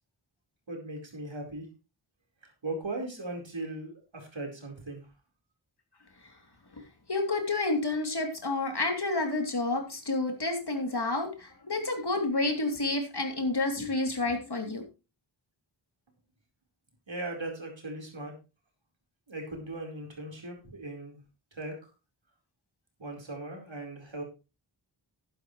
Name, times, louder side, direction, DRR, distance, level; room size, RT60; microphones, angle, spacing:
voice 1, 0.7-1.7 2.6-5.0 17.1-18.3 19.3-21.2 21.5-21.7 23.0-24.2, right 2 dB, 70° right, 1 dB, 4.5 m, -38 dB
voice 2, 7.1-14.8, left 2 dB, 55° left, 3 dB, 3.2 m, -29 dB
11.5 x 10.5 x 3.2 m, 0.30 s
wide cardioid pair, 40°, 47 cm